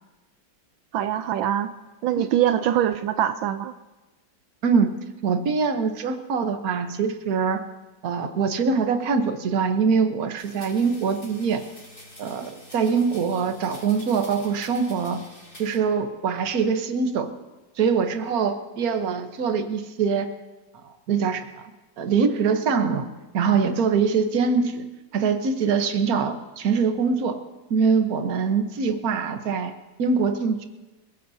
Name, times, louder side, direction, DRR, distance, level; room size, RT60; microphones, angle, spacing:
voice 1, 0.9-1.7 2.0-3.7, right 11 dB, 85° right, 10 dB, 1.4 m, -23 dB
voice 2, 4.6-4.9 5.2-7.6 8.0-11.6 12.2-15.2 15.6-17.3 17.8-20.3 20.8-21.5 22.0-23.0 23.3-24.8 25.1-27.4 27.7-29.7 30.0-30.6, right 5 dB, 55° right, 7 dB, 1.5 m, -23 dB
sound 1, 10.4-15.8, left 1 dB, 30° left, 5.7 m, -47 dB
28.0 x 15.5 x 2.8 m, 1.1 s
omnidirectional pair, 2.1 m